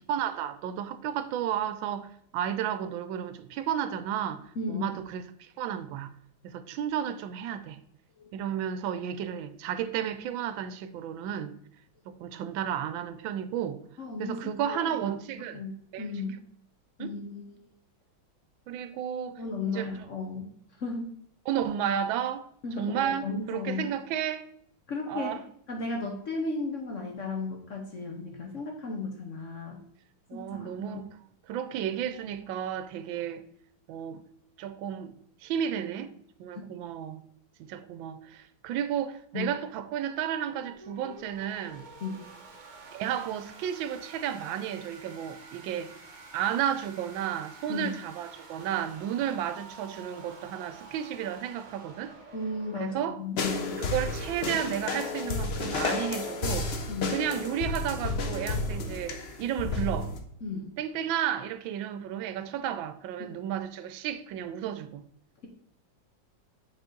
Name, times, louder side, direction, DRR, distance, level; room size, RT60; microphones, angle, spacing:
voice 1, 0.0-4.4 4.7-6.1 6.4-7.8 8.3-11.6 12.1-13.8 14.2-15.6 15.9-16.1 17.0-17.1 18.7-19.9 21.5-22.5 22.8-24.5 25.1-25.4 30.3-31.1 31.5-33.4 33.9-34.2 34.6-35.1 35.4-36.1 36.4-37.2 37.6-41.8 42.9-45.9 46.3-52.1 52.7-53.2 53.8-56.7 57.1-60.1 60.8-65.0, right 9 dB, 80° right, 1.3 m, -32 dB
voice 2, 4.6-4.9 8.2-8.3 14.0-15.0 15.5-15.7 16.0-16.4 17.0-17.6 19.4-20.5 20.8-21.1 22.6-23.9 24.9-25.4 25.7-29.8 30.3-31.0 39.3-39.5 42.0-42.2 47.7-48.0 52.3-53.8 56.9-57.2 60.4-60.7, left 3 dB, 55° left, 0.9 m, -35 dB
sound 1, 40.4-53.1, right 3 dB, 45° right, 0.6 m, -49 dB
sound 2, 53.4-60.2, left 3 dB, 90° left, 0.5 m, -32 dB
7.9 x 4.1 x 3.7 m
omnidirectional pair, 2.1 m